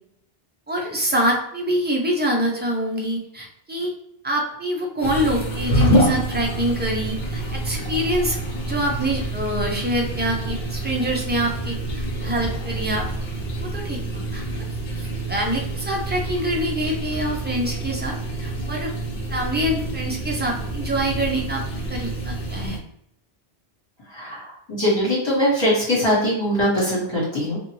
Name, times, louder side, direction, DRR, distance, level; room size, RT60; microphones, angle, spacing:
voice 1, 0.7-3.9 4.2-8.4 8.6-13.1 13.6-14.4 15.0-18.9 19.3-21.6 21.9-22.8, equal, 15° right, 0 dB, 0.4 m, -25 dB
sound 1, 5.0-22.8, right 1 dB, 70° left, 1.0 m, -27 dB
voice 2, 24.1-27.6, equal, 25° left, -8 dB, 1.6 m, -21 dB
2.8 x 2.5 x 3.0 m, 0.71 s
omnidirectional pair, 1.1 m